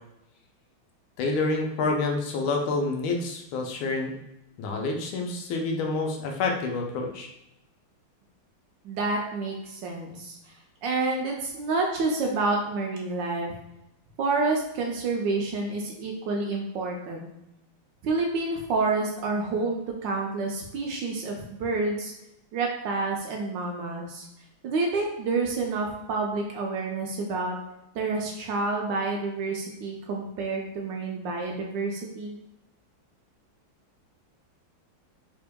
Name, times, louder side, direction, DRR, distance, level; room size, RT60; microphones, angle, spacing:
voice 1, 1.2-4.1 4.6-7.3, left 3 dB, 80° left, 2 dB, 1.4 m, -28 dB
voice 2, 8.8-10.4 10.8-13.5 14.2-17.3 18.0-22.1 22.5-24.3 24.6-27.6 27.9-32.4, right 3 dB, 75° right, 0 dB, 1.2 m, -28 dB
3.5 x 3.4 x 2.2 m, 0.87 s
omnidirectional pair, 2.2 m